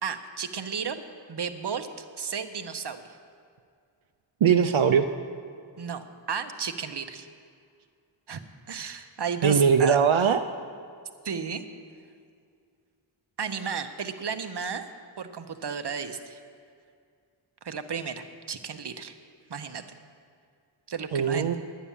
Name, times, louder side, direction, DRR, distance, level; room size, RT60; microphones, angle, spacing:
voice 1, 0.0-1.0 1.3-3.0 5.8-7.3 8.3-8.4 8.7-10.0 11.2-11.6 13.4-14.9 15.2-16.4 17.6-19.1 19.5-19.8 20.9-21.6, right 6 dB, 60° right, 8 dB, 0.8 m, -33 dB
voice 2, 4.4-5.1 9.4-10.4 21.1-21.5, right 7 dB, 85° right, 7 dB, 0.6 m, -20 dB
10.0 x 9.8 x 7.1 m, 2.3 s
wide cardioid pair, 60°, 47 cm